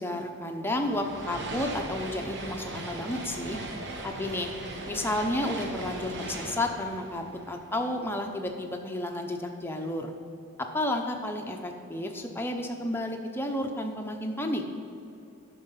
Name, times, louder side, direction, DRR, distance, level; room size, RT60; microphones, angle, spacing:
voice 1, 0.0-3.6 4.0-4.5 4.9-10.1 10.7-14.6, left 1 dB, 10° left, 3 dB, 0.7 m, -31 dB
sound 1, 0.7-8.1, right 2 dB, 50° right, 0.9 m, -39 dB
10.5 x 6.1 x 5.6 m, 2.8 s
head